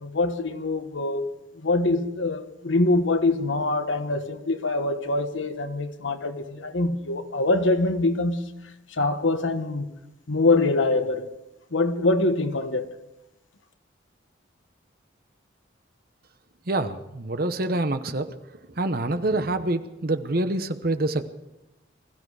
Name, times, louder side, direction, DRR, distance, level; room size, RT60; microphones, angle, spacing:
voice 1, 0.0-1.2 1.6-8.4 8.9-9.9 10.3-11.3 11.7-12.9, left 2 dB, 80° left, 1.3 m, -24 dB
voice 2, 16.7-18.3 18.8-21.2, right 2 dB, 50° right, 0.9 m, -26 dB
21.0 x 13.5 x 4.9 m
head